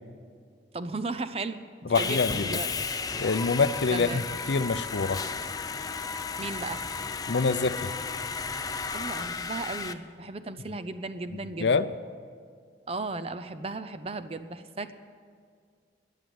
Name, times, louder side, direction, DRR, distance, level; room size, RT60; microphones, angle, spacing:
voice 1, 0.7-1.6 2.0-2.7 3.9-4.3 6.4-6.8 8.9-11.9 12.9-14.9, right 3 dB, 30° right, 11 dB, 0.6 m, -35 dB
voice 2, 1.9-2.6 3.2-4.2 4.5-5.2 7.3-7.9 11.6-11.9, left 4 dB, 75° left, 14 dB, 0.6 m, -25 dB
Sawing, 1.9-9.9, left 5 dB, 20° left, 0.5 m, -33 dB
14.0 x 10.0 x 9.3 m, 2.1 s
head